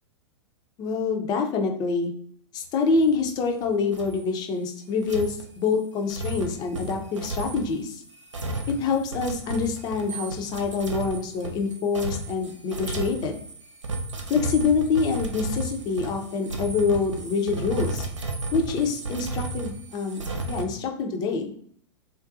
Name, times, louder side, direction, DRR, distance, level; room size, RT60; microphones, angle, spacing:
voice 1, 0.8-2.1 2.5-8.0 8.8-13.4 14.3-18.1 18.5-20.2 20.5-21.5, left 4 dB, 25° left, 4 dB, 0.4 m, -26 dB
sound 1, 2.9-3.6 3.9-4.2 5.0-20.6, right 2 dB, 85° right, 0.5 m, -34 dB
2.5 x 2.2 x 2.5 m, 0.63 s
figure-of-eight pair, 105°, 15 cm